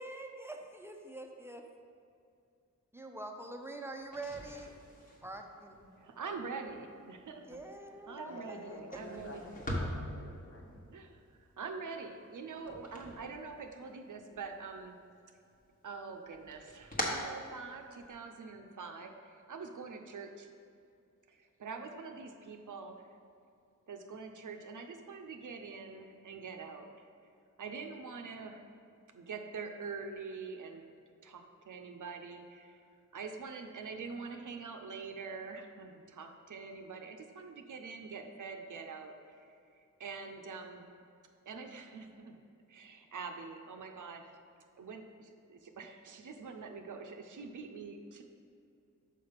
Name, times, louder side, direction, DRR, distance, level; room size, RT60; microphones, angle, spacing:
voice 1, 0.0-1.6 2.9-4.7 5.2-5.9 7.5-8.8, right 2 dB, 10° right, 3 dB, 0.6 m, -45 dB
sound 1, 4.0-14.0 14.3-15.2 15.5-18.2, equal, 25° left, 1.1 m, -43 dB
voice 2, 6.0-7.5 8.1-9.4 10.9-15.0 15.8-20.5 21.3-23.1 23.9-27.1 27.6-28.6 29.1-32.8 33.1-39.6 40.0-40.9 41.5-42.4 42.7-44.3 44.8-48.2, right 4 dB, 75° right, 4 dB, 0.6 m, -45 dB
voice 3, 8.2-10.8, left 1 dB, 50° left, 0 dB, 1.1 m, -49 dB
5.6 x 5.2 x 5.1 m, 2.5 s
wide cardioid pair, 75°, 31 cm